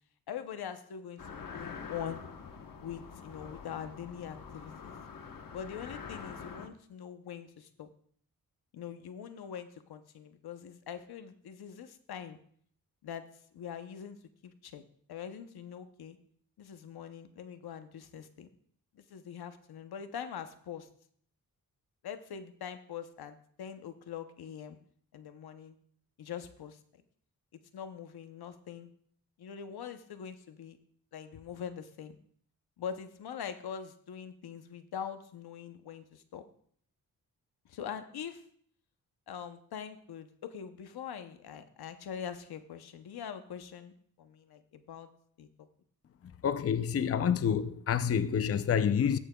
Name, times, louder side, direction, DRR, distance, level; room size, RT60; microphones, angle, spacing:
voice 1, 0.3-2.3 2.8-5.0 5.5-7.9 8.7-12.4 13.0-14.2 14.4-14.8 15.1-16.2 16.6-18.5 18.9-20.9 22.0-24.8 25.1-25.8 26.2-26.8 27.7-28.9 29.4-30.8 31.1-32.2 32.8-36.4 37.6-38.4 39.3-45.1 45.4-45.5, left 8 dB, 85° left, 0.8 m, -43 dB
sound 1, 1.2-6.7, left 5 dB, 60° left, 1.1 m, -45 dB
voice 2, 46.4-49.2, left 8 dB, 40° left, 0.5 m, -28 dB
14.0 x 8.6 x 2.3 m
cardioid pair, 80°, 37 cm